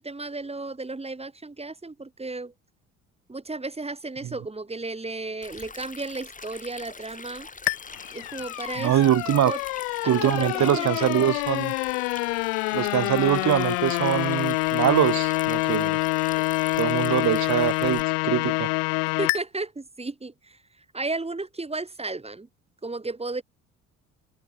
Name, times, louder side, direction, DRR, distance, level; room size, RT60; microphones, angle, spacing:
voice 1, 0.0-2.5 3.3-7.5 8.1-9.0 9.4-9.6 10.0-11.3 19.2-20.6 20.9-22.5 22.8-23.4, right 3 dB, 15° right, 3.0 m, -34 dB
Stream, 5.4-18.0, left 4 dB, 20° left, 2.4 m, -43 dB
sound 1, 7.7-19.4, left 40 dB or more, 75° left, 1.5 m, -26 dB
voice 2, 8.8-9.5 10.1-11.7 12.7-16.0 16.8-18.7, right 12 dB, 50° right, 1.7 m, -23 dB
hypercardioid pair, 55°, 36 cm